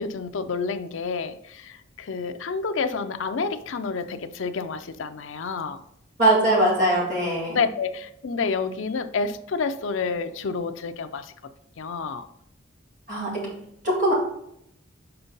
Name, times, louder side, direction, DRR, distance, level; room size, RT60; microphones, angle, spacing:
voice 1, 0.0-5.8 7.5-11.3 11.8-12.2, left 4 dB, 75° left, 9 dB, 0.5 m, -29 dB
voice 2, 6.2-7.6 13.1-13.5 13.8-14.1, right 1 dB, 40° right, -4 dB, 2.4 m, -21 dB
6.7 x 4.4 x 3.9 m, 0.76 s
head